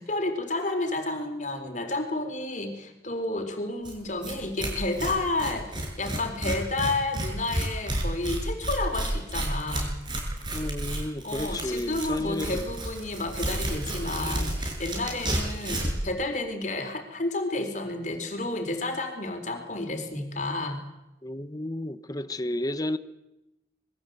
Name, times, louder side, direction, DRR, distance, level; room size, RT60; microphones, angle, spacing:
voice 1, 0.0-9.9 11.2-20.8, left 2 dB, 45° left, 4.0 m, -31 dB
Tearing, 3.8-3.9 4.2-4.3 4.6-16.0, right 1 dB, 25° right, 6.1 m, -31 dB
voice 2, 10.5-12.7 21.2-23.0, left 1 dB, 20° left, 1.0 m, -32 dB
26.0 x 22.5 x 8.1 m
head